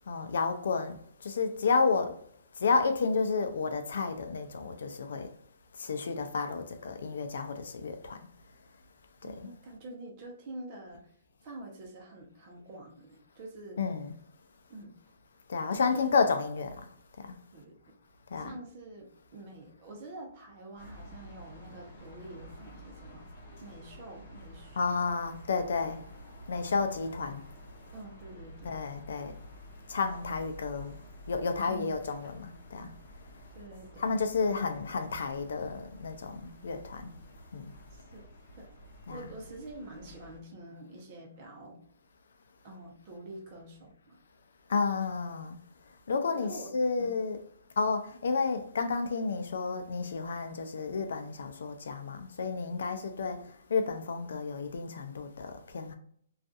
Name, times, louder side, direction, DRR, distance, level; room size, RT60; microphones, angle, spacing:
voice 1, 0.1-2.2 2.5-5.3 5.7-8.3 9.2-9.5 13.8-14.2 15.5-17.4 18.3-18.6 24.8-26.0 26.5-27.4 28.6-29.4 29.9-31.0 31.3-32.9 34.0-37.1 37.5-37.7 39.1-39.4 44.7-45.6 45.9-47.4 47.8-56.0, left 4 dB, 75° left, 0.4 m, -31 dB
voice 2, 9.2-11.0 11.4-13.8 14.7-14.9 15.9-16.2 17.5-17.8 18.3-23.2 23.6-24.8 27.9-28.7 31.7-32.0 33.5-34.0 34.5-34.7 37.9-38.3 38.6-38.7 39.1-41.8 42.6-44.2 46.3-46.7 47.0-47.1, right 1 dB, 30° right, 0.7 m, -46 dB
sound 1, 20.8-40.4, equal, 45° left, 0.9 m, -50 dB
2.6 x 2.4 x 2.3 m
hypercardioid pair, 170°, 0 cm